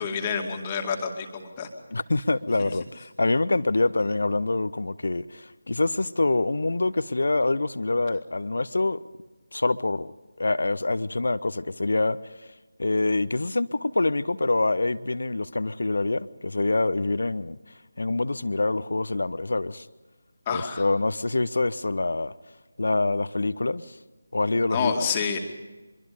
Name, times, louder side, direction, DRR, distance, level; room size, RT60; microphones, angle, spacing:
voice 1, 0.0-1.7 2.6-2.7 20.5-20.8 24.7-25.4, left 6 dB, 20° left, 2.3 m, -28 dB
voice 2, 1.9-9.0 9.5-10.1 10.4-12.2 12.8-17.6 18.0-19.9 20.5-22.3 22.8-24.0 24.3-25.0, left 2 dB, 55° left, 0.9 m, -25 dB
25.0 x 23.0 x 5.2 m
figure-of-eight pair, 160°, 0 cm